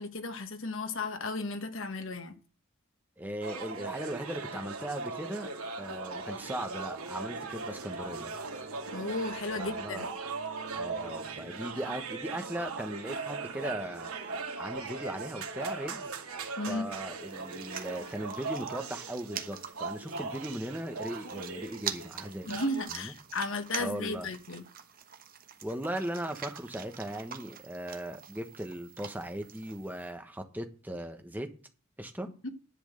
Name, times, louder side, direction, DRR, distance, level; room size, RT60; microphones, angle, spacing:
voice 1, 0.0-2.3 8.9-10.1 16.6-16.8 22.5-24.6 32.4-32.5, left 2 dB, 60° left, 1.3 m, -34 dB
voice 2, 3.2-5.5 5.8-8.3 9.6-10.1 10.7-14.1 14.6-16.1 16.7-22.5 22.9-23.1 23.8-24.3 25.6-31.5 32.0-32.3, right 1 dB, 10° right, 1.2 m, -38 dB
sound 1, 3.4-22.8, right 4 dB, 85° right, 2.0 m, -39 dB
sound 2, 5.7-24.5, right 2 dB, 60° right, 2.7 m, -53 dB
sound 3, 17.2-30.1, right 8 dB, 40° right, 1.2 m, -45 dB
10.5 x 6.3 x 7.9 m
head